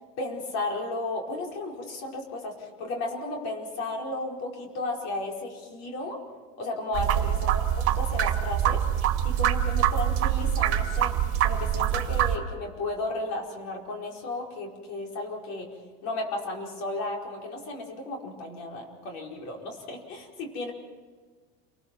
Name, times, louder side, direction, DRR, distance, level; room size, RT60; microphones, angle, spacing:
voice 1, 0.2-6.2 6.6-11.1 11.4-15.7 16.0-20.7, left 2 dB, 55° left, 1 dB, 4.8 m, -34 dB
sound 1, 6.9-12.3, right 10 dB, 45° right, 1.9 m, -25 dB
28.5 x 20.0 x 6.1 m, 1.5 s
supercardioid pair, 140°, 32 cm